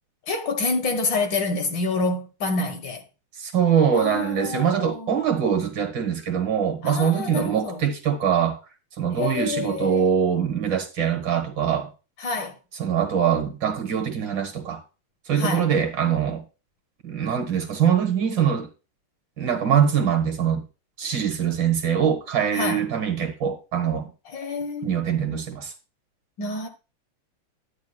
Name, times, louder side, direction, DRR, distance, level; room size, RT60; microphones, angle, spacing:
voice 1, 0.3-3.0 3.9-5.2 6.8-7.8 9.2-10.1 12.2-12.6 15.4-15.7 22.5-22.8 24.3-25.0 26.4-26.7, left 3 dB, 60° left, 2.0 m, -27 dB
voice 2, 3.4-8.6 9.0-11.9 12.8-14.8 15.3-16.4 17.0-18.7 19.4-20.6 21.0-24.1 24.8-25.7, right 8 dB, 60° right, 2.1 m, -23 dB
11.5 x 9.6 x 2.3 m
omnidirectional pair, 2.4 m